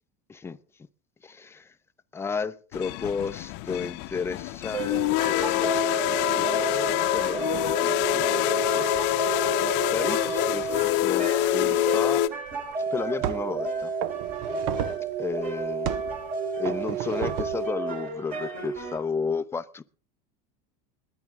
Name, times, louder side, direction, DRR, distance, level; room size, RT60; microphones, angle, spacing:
voice 1, 1.2-1.7 2.1-9.3 9.6-12.2 12.9-13.9 15.2-15.9 16.6-19.8, left 5 dB, 10° left, 0.6 m, -33 dB
sound 1, 2.7-12.3, left 14 dB, 60° left, 0.8 m, -25 dB
sound 2, 4.7-19.0, right 5 dB, 40° right, 3.9 m, -32 dB
sound 3, 12.5-12.6 13.2-13.6 14.0-15.1 15.9-16.2 16.7-17.7, right 11 dB, 60° right, 0.9 m, -32 dB
21.0 x 9.0 x 3.6 m
supercardioid pair, 115°, 21 cm